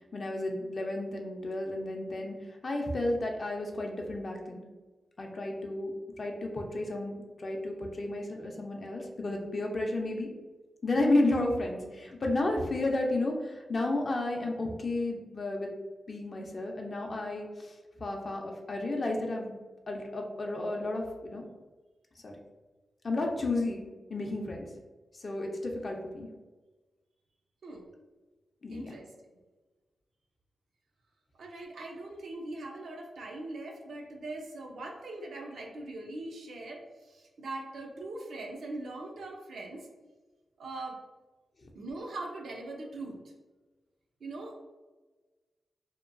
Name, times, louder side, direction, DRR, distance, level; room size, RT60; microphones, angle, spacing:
voice 1, 0.0-4.6 5.2-5.9 6.2-10.3 10.8-15.7 16.1-19.6 19.9-21.4 22.2-22.3 23.0-23.8 24.1-24.7 25.1-26.3 28.6-29.0 41.6-41.7, left 2 dB, 50° left, 1 dB, 0.5 m, -32 dB
voice 2, 27.6-27.9 28.7-29.3 31.4-39.9 40.6-41.0 41.7-43.3 44.2-44.6, right 2 dB, 75° right, 1 dB, 0.5 m, -41 dB
2.8 x 2.2 x 2.5 m, 1.3 s
cardioid pair, 70°, 0 cm